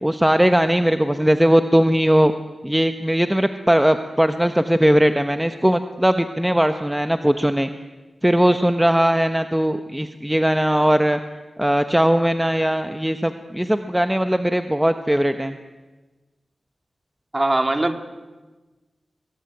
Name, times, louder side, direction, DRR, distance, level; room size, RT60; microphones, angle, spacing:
voice 1, 0.0-2.3 2.6-7.7 8.2-11.2 11.6-15.5, equal, 5° right, 8 dB, 1.1 m, -19 dB
voice 2, 17.3-18.0, right 2 dB, 30° right, 7 dB, 2.3 m, -21 dB
24.0 x 22.0 x 9.6 m, 1.2 s
wide cardioid pair, 80°, 0 cm